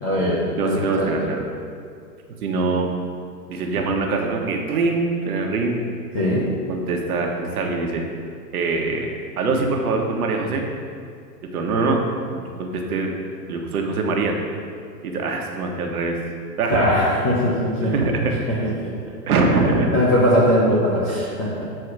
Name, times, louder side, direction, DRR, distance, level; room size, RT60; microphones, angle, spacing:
voice 1, 0.0-1.1 6.1-6.4 16.7-17.9 18.8-18.9 19.7-21.7, equal, 10° left, -8 dB, 0.4 m, -20 dB
voice 2, 0.6-1.4 2.4-2.9 3.5-5.8 6.7-8.0 8.5-9.1 9.4-10.7 11.5-12.0 12.3-13.1 13.5-14.4 15.0-16.2 16.6-16.8 17.8-18.7 19.3-19.9, right 3 dB, 60° right, 1 dB, 1.3 m, -23 dB
8.0 x 4.8 x 4.6 m, 2.2 s
hypercardioid pair, 125°, 50 cm